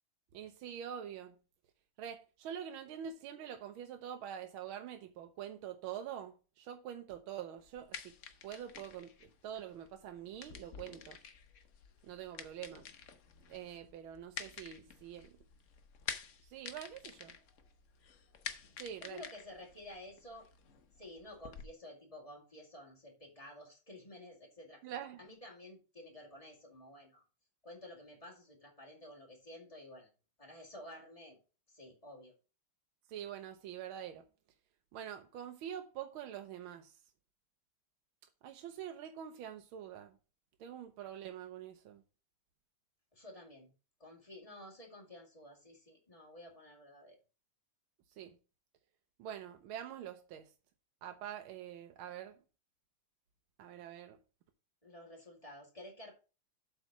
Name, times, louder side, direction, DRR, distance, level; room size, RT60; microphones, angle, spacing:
voice 1, 0.3-1.3 2.0-8.1 8.4-11.2 12.0-12.8 13.5-15.4 16.5-17.4 18.8-19.2 24.8-25.2 33.1-34.2 34.9-37.0 38.4-40.2 40.6-42.0 48.2-48.3 49.2-50.5 51.0-52.4 53.6-54.2, right 9 dB, 75° right, 1.5 m, -45 dB
sound 1, 7.6-21.6, left 7 dB, 70° left, 0.7 m, -49 dB
voice 2, 19.0-20.5 21.0-24.8 25.2-27.2 27.6-30.1 30.4-31.4 31.7-32.3 43.1-43.7 44.0-47.2 54.8-56.1, left 1 dB, 15° left, 2.1 m, -52 dB
7.8 x 4.2 x 5.8 m
omnidirectional pair, 2.4 m